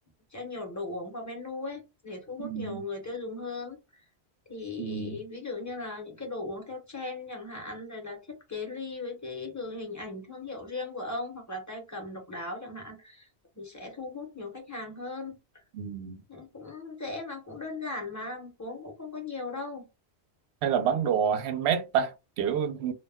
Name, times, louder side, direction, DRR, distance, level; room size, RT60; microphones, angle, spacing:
voice 1, 0.3-4.0 4.5-13.3 13.6-15.4 16.3-19.9, left 3 dB, 20° left, 0.7 m, -38 dB
voice 2, 2.4-2.8 4.8-5.2 15.7-16.2 20.6-22.9, right 8 dB, 75° right, 0.8 m, -28 dB
2.2 x 2.1 x 3.4 m
omnidirectional pair, 1.1 m